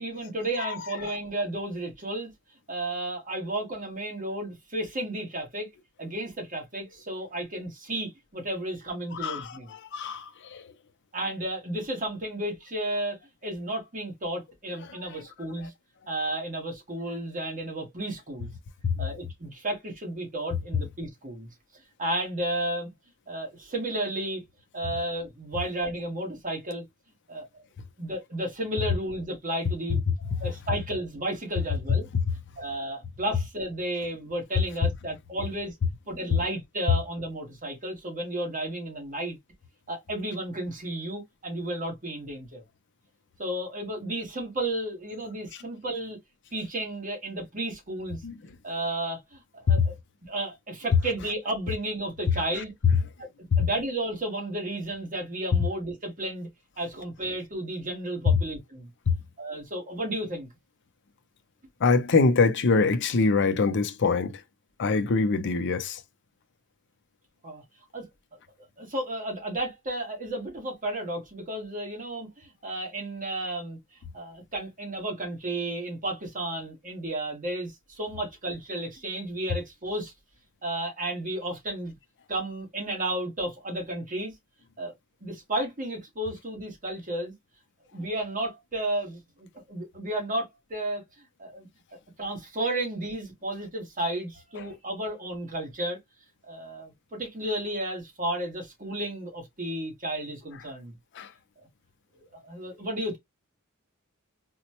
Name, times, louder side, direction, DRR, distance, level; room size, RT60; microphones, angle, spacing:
voice 1, 0.0-2.3 2.7-5.7 6.0-9.7 11.1-13.2 13.4-15.7 16.1-18.5 19.0-21.5 22.0-22.9 23.3-24.4 24.7-26.8 27.3-27.5 28.0-30.0 30.4-32.1 32.6-35.8 36.1-39.4 39.9-42.6 43.4-46.2 46.5-48.2 48.6-50.0 50.2-52.7 53.6-56.5 56.8-58.9 59.4-60.5 67.4-67.6 67.9-68.1 68.8-73.8 74.1-80.1 80.6-82.0 82.3-84.3 84.8-84.9 85.2-87.3 87.9-91.0 91.4-91.7 92.2-96.0 96.5-100.9 102.2-103.2, right 1 dB, 40° right, 1.4 m, -33 dB
voice 2, 9.2-9.6 9.9-10.6 14.9-15.2 18.8-19.0 48.2-48.3 49.7-49.9 53.5-53.7 58.3-58.4 59.1-59.2 61.8-64.4 64.8-66.0 101.1-101.3, left 4 dB, 55° left, 0.5 m, -24 dB
4.1 x 2.2 x 2.9 m
head